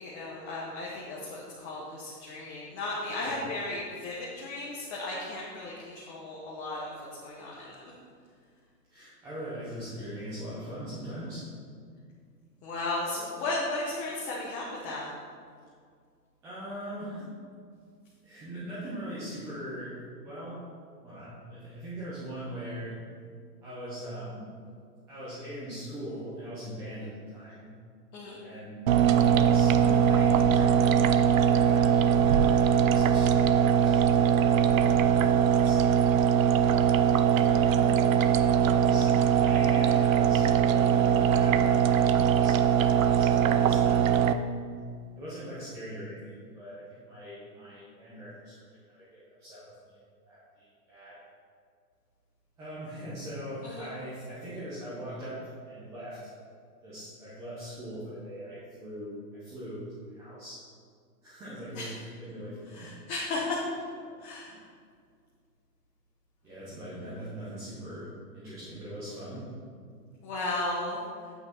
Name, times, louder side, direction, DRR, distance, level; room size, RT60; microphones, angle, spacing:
voice 1, 0.0-7.9 12.6-15.1 28.1-28.4 53.6-53.9 61.8-61.9 62.7-63.6 64.2-64.5 70.2-71.0, left 2 dB, 20° left, -5 dB, 0.8 m, -35 dB
voice 2, 8.9-11.4 16.4-17.2 18.2-20.0 20.2-20.6 21.0-22.9 23.6-24.4 25.1-27.7 28.4-30.9 31.3-32.0 32.2-34.9 35.3-36.0 37.2-38.1 38.6-44.4 45.1-48.5 48.9-51.1 52.6-56.2 56.8-59.8 60.1-60.6 61.2-62.9 64.0-64.2 64.5-64.6 66.4-69.4, equal, 5° right, -11 dB, 0.5 m, -41 dB
sound 1, 28.9-44.3, right 8 dB, 55° right, 0.5 m, -22 dB
8.1 x 6.0 x 4.3 m, 2.1 s
hypercardioid pair, 145°, 50 cm